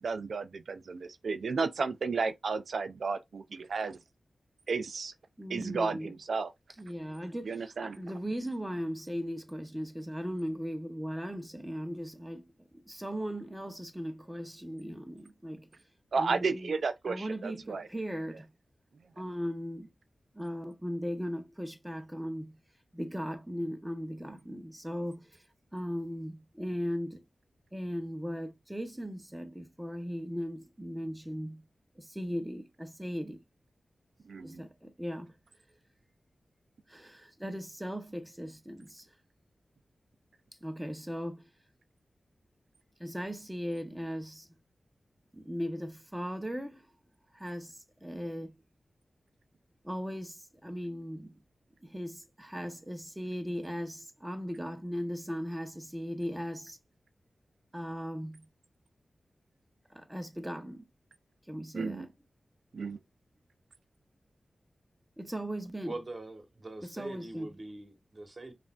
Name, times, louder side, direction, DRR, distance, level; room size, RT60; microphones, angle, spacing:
voice 1, 0.0-4.0 4.7-5.1 5.5-6.5 7.4-8.0 16.1-17.9 34.3-34.6 61.7-62.1 62.7-63.0, right 4 dB, 80° right, 0.3 m, -33 dB
voice 2, 5.4-6.1 6.8-12.4 12.7-15.7 16.2-16.7 17.0-18.5 19.2-19.9 20.3-22.6 22.9-25.4 25.7-27.2 27.7-31.6 32.0-33.4 34.4-35.3 36.9-39.1 40.6-41.5 43.0-44.5 45.3-46.9 47.3-48.5 49.8-51.4 51.8-56.8 57.7-58.4 59.9-60.8 61.5-62.1 65.2-66.0 66.8-67.5, equal, 10° right, 0.8 m, -38 dB
voice 3, 65.8-68.5, right 2 dB, 40° right, 1.1 m, -43 dB
5.4 x 2.5 x 2.3 m
cardioid pair, 60°, 0 cm